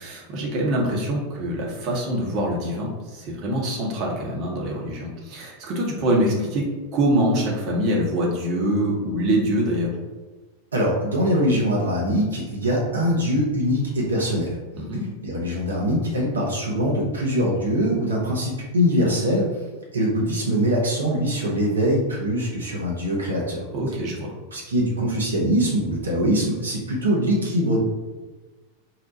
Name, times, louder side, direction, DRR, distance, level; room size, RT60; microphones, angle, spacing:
voice 1, 0.0-9.9 14.7-15.0 23.7-24.3, right 1 dB, 40° right, -2 dB, 0.8 m, -24 dB
voice 2, 10.7-14.6 15.2-19.5 19.9-23.6 24.5-27.8, equal, 70° right, -3 dB, 0.7 m, -23 dB
2.8 x 2.1 x 4.0 m, 1.3 s
figure-of-eight pair, 90°, 0 cm